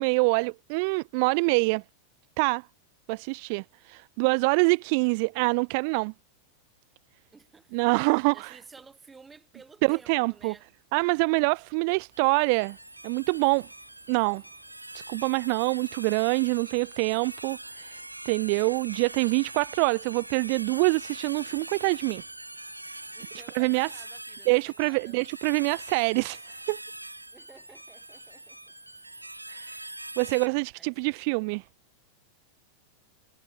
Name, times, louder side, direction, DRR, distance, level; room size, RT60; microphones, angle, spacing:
voice 1, 0.0-1.8 2.4-2.7 3.1-6.1 7.7-8.6 9.8-10.5 10.9-12.8 13.0-13.7 14.1-14.4 15.1-22.2 23.5-23.9 24.5-26.8 29.5-29.8 30.2-31.6, right 33 dB, 45° right, 0.7 m, -25 dB
voice 2, 7.3-7.8 8.3-10.6 23.1-25.2 27.3-28.6 30.3-31.1, right 4 dB, 15° right, 6.0 m, -53 dB
sound 1, 12.1-30.5, right 1 dB, 85° right, 3.0 m, -43 dB
figure-of-eight pair, 90°, 0 cm